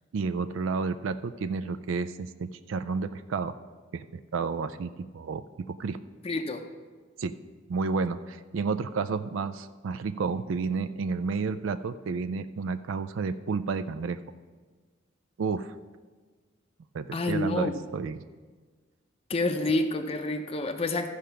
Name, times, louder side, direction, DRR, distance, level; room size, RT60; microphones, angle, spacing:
voice 1, 0.1-3.6 3.9-6.0 7.2-7.3 7.7-14.2 15.4-15.7 16.9-18.2, right 4 dB, 80° right, 11 dB, 0.4 m, -31 dB
voice 2, 6.2-6.6 17.1-17.7 19.3-21.1, left 2 dB, 30° left, 5 dB, 0.5 m, -28 dB
14.0 x 4.9 x 5.6 m, 1.4 s
head